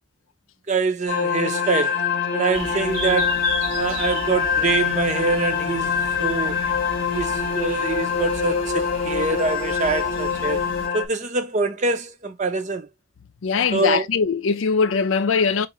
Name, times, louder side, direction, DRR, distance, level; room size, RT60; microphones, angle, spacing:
voice 1, 0.7-2.0 2.3-3.4 3.7-5.9 6.2-6.6 7.1-10.6 10.9-12.9 13.7-14.1, right 3 dB, 35° right, 0.6 m, -24 dB
sound 1, 1.1-11.1, left 6 dB, 45° left, 0.8 m, -24 dB
sound 2, 2.5-10.9, right 3 dB, 75° right, 1.1 m, -36 dB
voice 2, 13.4-15.7, left 5 dB, 80° left, 0.5 m, -21 dB
4.7 x 2.5 x 3.0 m
head